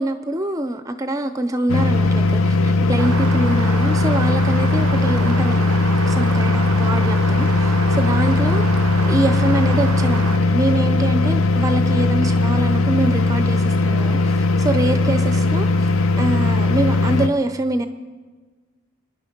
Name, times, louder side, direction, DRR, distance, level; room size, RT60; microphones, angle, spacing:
voice 1, 0.0-5.7 6.1-8.7 9.1-15.9 16.2-17.9, right 1 dB, 15° right, 10 dB, 0.5 m, -24 dB
sound 1, 1.7-17.3, left 2 dB, 70° left, 0.8 m, -18 dB
Rain, 3.0-10.4, right 6 dB, 85° right, 0.6 m, -29 dB
26.0 x 10.5 x 5.2 m, 1.4 s
head